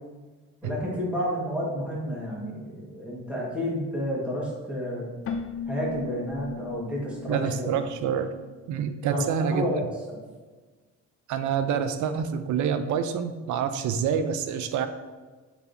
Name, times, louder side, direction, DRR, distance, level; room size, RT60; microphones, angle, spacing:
voice 1, 0.6-5.1 5.7-7.8 9.1-9.8 10.1-10.2, equal, 5° right, -5 dB, 1.4 m, -30 dB
Keyboard (musical), 5.2-8.9, left 6 dB, 45° left, 0.4 m, -38 dB
voice 2, 7.3-8.3 8.7-9.7 11.3-14.9, right 7 dB, 75° right, 10 dB, 0.5 m, -27 dB
4.7 x 3.2 x 2.6 m, 1.3 s
cardioid pair, 90°, 30 cm